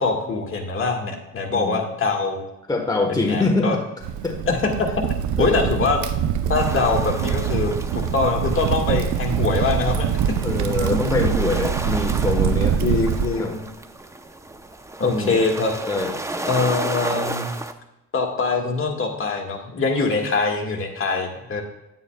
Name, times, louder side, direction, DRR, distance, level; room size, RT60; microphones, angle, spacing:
voice 1, 0.0-2.4 3.1-3.8 4.5-5.0 5.4-6.0 6.5-10.1 10.8-11.0 12.8-13.6 15.0-15.7 16.5-17.5 18.1-21.6, left 4 dB, 45° left, 2 dB, 1.7 m, -23 dB
voice 2, 1.5-1.8 2.7-3.8 4.2-4.4 5.4-5.7 10.4-12.8 13.4-13.5 15.0-15.4 15.9-16.1, left 2 dB, 15° left, 3 dB, 1.2 m, -24 dB
Crackle, 4.0-13.3, right 8 dB, 75° right, 0.6 m, -24 dB
sound 1, 6.6-17.7, right 2 dB, 10° right, 0.6 m, -34 dB
10.0 x 9.7 x 2.3 m, 0.95 s
cardioid pair, 90°, 30 cm